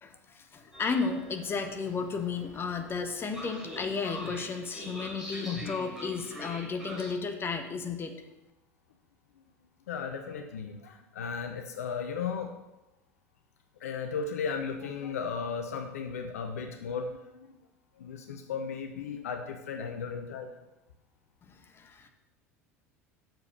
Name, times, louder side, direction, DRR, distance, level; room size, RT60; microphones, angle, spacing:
voice 1, 0.0-8.1 21.5-22.1, left 5 dB, 25° left, 6 dB, 1.2 m, -33 dB
Train, 0.7-7.1, equal, 5° right, 3.3 m, -44 dB
voice 2, 9.9-12.5 13.8-17.6 18.0-20.5, left 6 dB, 70° left, 6 dB, 0.7 m, -35 dB
6.9 x 5.7 x 6.9 m, 0.97 s
figure-of-eight pair, 75°, 8 cm